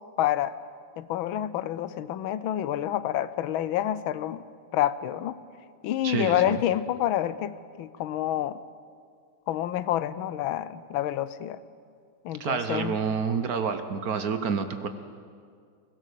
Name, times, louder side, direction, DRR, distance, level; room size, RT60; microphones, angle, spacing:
voice 1, 0.2-0.5 1.0-4.5 4.7-5.4 5.8-8.6 9.5-11.6 12.2-13.0, left 12 dB, 85° left, 15 dB, 1.5 m, -28 dB
voice 2, 6.0-6.6 12.4-14.9, right 6 dB, 55° right, 9 dB, 1.2 m, -28 dB
23.0 x 17.5 x 6.9 m, 2.2 s
omnidirectional pair, 2.2 m